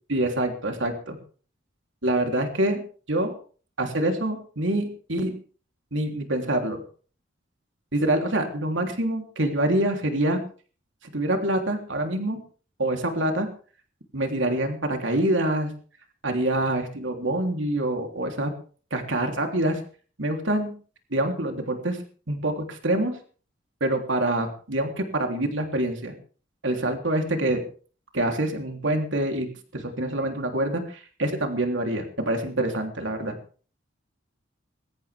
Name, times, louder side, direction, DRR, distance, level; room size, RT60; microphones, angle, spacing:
voice 1, 0.1-1.2 2.0-2.8 3.1-3.3 3.8-5.3 5.9-6.8 7.9-10.4 11.1-12.4 12.8-13.5 14.1-15.7 16.2-18.5 18.9-19.8 20.2-20.7 21.1-22.0 22.3-23.2 23.8-26.1 26.6-27.6 28.1-29.5 29.7-33.3, right 1 dB, 90° right, 4 dB, 3.3 m, -26 dB
22.0 x 17.0 x 3.5 m, 0.41 s
head